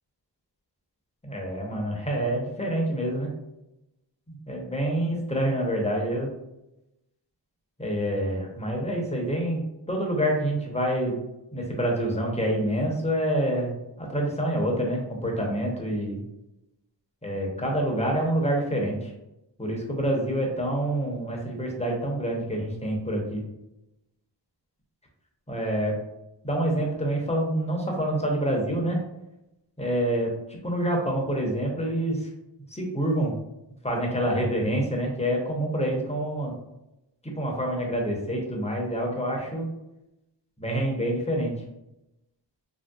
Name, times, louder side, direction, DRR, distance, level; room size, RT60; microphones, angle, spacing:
voice 1, 1.2-3.3 4.3-6.3 7.8-9.6 9.9-11.2 11.5-16.2 17.2-19.1 19.6-23.4 25.5-26.0 26.4-29.0 29.8-32.3 32.7-33.4 33.8-36.5 37.2-39.7 40.6-41.5, right 1 dB, 15° left, -1 dB, 0.7 m, -27 dB
3.2 x 2.7 x 2.3 m, 0.91 s
wide cardioid pair, 80°, 45 cm